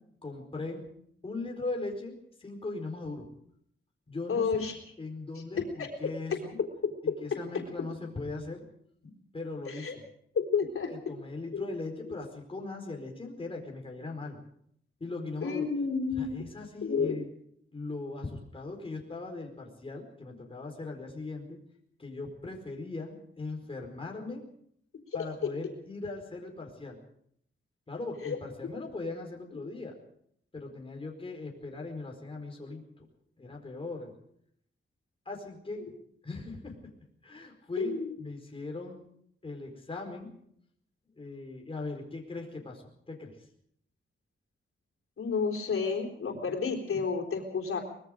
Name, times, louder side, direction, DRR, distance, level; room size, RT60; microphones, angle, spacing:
voice 1, 0.2-0.8 1.2-3.3 4.1-4.5 5.0-6.6 7.0-8.6 9.3-10.0 10.8-14.4 15.0-15.6 16.1-17.3 17.7-21.6 22.0-24.4 25.1-27.0 27.9-29.9 30.5-33.0 33.4-34.1 35.2-35.8 36.2-36.9 37.2-37.9 38.2-39.0 39.4-40.3 41.1-43.4, left 3 dB, 25° left, 1 dB, 4.7 m, -39 dB
voice 2, 4.3-4.8 5.6-5.9 9.7-10.0 10.3-10.9 11.5-11.6 12.1-12.2 15.4-16.4 16.8-17.2 28.2-28.4 37.8-38.1 45.2-47.8, left 5 dB, 85° left, 1 dB, 3.8 m, -30 dB
24.0 x 21.0 x 5.1 m, 0.69 s
wide cardioid pair, 150°, 21 cm